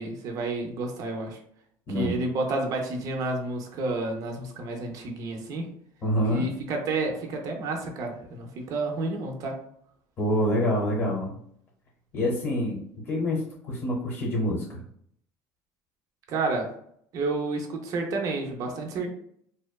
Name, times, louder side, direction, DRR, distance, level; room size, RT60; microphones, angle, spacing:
voice 1, 0.0-1.4 1.9-5.7 6.3-9.5 16.3-16.7 17.1-19.1, right 2 dB, 45° right, 2 dB, 0.5 m, -30 dB
voice 2, 1.9-2.2 6.0-6.5 10.2-11.3 12.1-12.8 13.1-13.4 13.7-14.8, equal, 35° left, -4 dB, 0.8 m, -26 dB
2.7 x 2.1 x 2.2 m, 0.67 s
cardioid pair, 135°, 8 cm